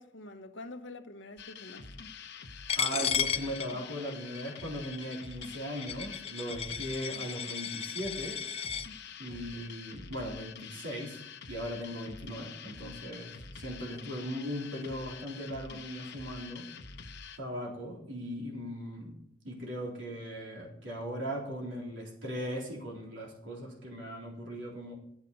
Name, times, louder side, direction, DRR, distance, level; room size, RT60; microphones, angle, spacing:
voice 1, 0.0-1.9 9.3-9.8, left 2 dB, 80° left, 1.2 m, -47 dB
sound 1, 1.4-17.4, left 6 dB, 65° left, 1.1 m, -47 dB
Coin (dropping), 2.7-8.9, left 7 dB, 35° left, 0.6 m, -34 dB
voice 2, 2.7-8.4 9.2-11.2 11.5-16.7 17.4-19.2 19.4-24.9, equal, 80° right, 3.7 m, -38 dB
13.0 x 8.3 x 5.4 m
head